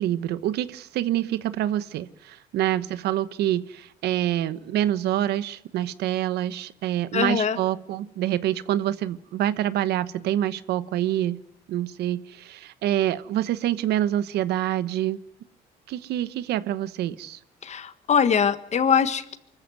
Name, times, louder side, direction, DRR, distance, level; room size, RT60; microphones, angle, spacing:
voice 1, 0.0-11.4 11.7-15.2 15.9-17.4, right 12 dB, 75° right, 15 dB, 1.1 m, -26 dB
voice 2, 7.1-7.6 17.6-19.4, left 7 dB, 40° left, 12 dB, 1.5 m, -22 dB
24.5 x 14.5 x 9.4 m, 0.77 s
cardioid pair, 110°, 17 cm